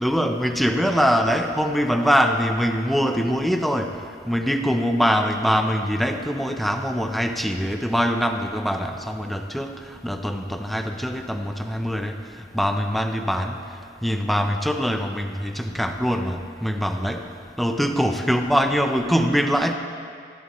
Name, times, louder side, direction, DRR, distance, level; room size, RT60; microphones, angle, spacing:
voice 1, 0.0-3.9 4.3-9.7 10.0-12.1 12.5-13.6 14.0-17.2 17.6-19.7, equal, ahead, 4 dB, 0.7 m, -23 dB
20.5 x 15.0 x 3.1 m, 2.2 s
head